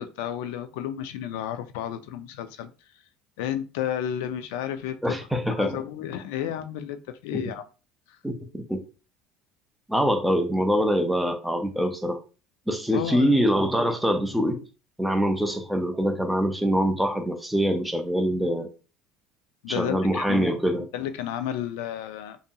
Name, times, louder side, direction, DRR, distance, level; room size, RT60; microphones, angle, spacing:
voice 1, 0.0-2.7 3.4-5.3 5.6-7.6 8.1-8.2 12.9-13.4 19.6-20.5 20.9-22.4, left 10 dB, 85° left, 0.3 m, -32 dB
voice 2, 5.0-5.8 7.3-7.4 8.2-8.8 9.9-12.2 12.7-14.6 15.0-18.7 19.7-20.8, equal, ahead, 0.3 m, -24 dB
2.7 x 2.6 x 2.2 m
cardioid pair, 165°, 0 cm